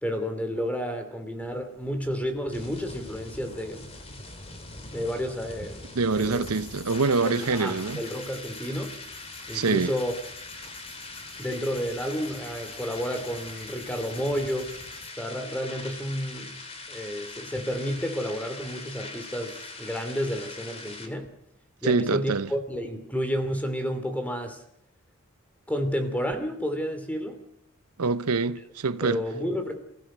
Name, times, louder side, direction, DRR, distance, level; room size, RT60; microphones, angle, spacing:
voice 1, 0.0-3.9 4.9-5.9 6.1-6.4 7.2-8.9 9.5-10.1 11.4-14.7 15.2-16.5 16.9-21.3 21.8-24.6 25.7-27.4 29.0-29.7, equal, 5° left, 2.8 m, -31 dB
sound 1, 1.4-21.1, left 3 dB, 30° left, 2.5 m, -42 dB
voice 2, 5.9-8.0 9.5-9.9 21.8-22.5 28.0-29.2, right 4 dB, 85° right, 0.8 m, -25 dB
sound 2, 6.1-15.1, left 2 dB, 55° left, 6.9 m, -49 dB
28.5 x 16.0 x 6.3 m
head